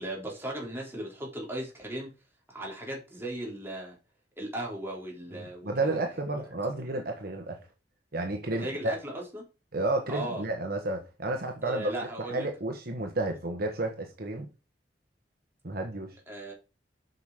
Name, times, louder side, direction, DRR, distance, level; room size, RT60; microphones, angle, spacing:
voice 1, 0.0-2.1 2.5-4.0 4.4-6.0 6.3-6.5 8.5-9.4 10.1-10.4 11.6-12.5 16.3-16.5, right 1 dB, 15° right, 3.6 m, -37 dB
voice 2, 5.3-7.6 8.1-8.9 9.7-11.9 12.3-14.5 15.6-16.2, right 2 dB, 55° right, 1.4 m, -31 dB
8.2 x 5.8 x 5.0 m
head